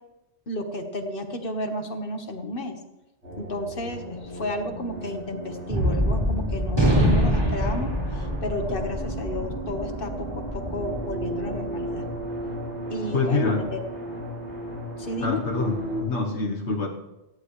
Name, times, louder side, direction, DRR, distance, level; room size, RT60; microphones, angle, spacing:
voice 1, 0.5-2.8 3.4-12.0 12.9-13.8 15.0-15.4, left 1 dB, 50° left, 5 dB, 1.6 m, -32 dB
sound 1, 3.2-16.0, right 1 dB, 70° right, 6.1 m, -35 dB
Gunshot gunfire, 5.7-12.3, equal, 20° right, 4.5 m, -25 dB
voice 2, 13.1-13.6 15.2-16.9, left 3 dB, 75° left, 0 dB, 1.6 m, -26 dB
18.0 x 14.0 x 3.2 m, 1.0 s
omnidirectional pair, 1.2 m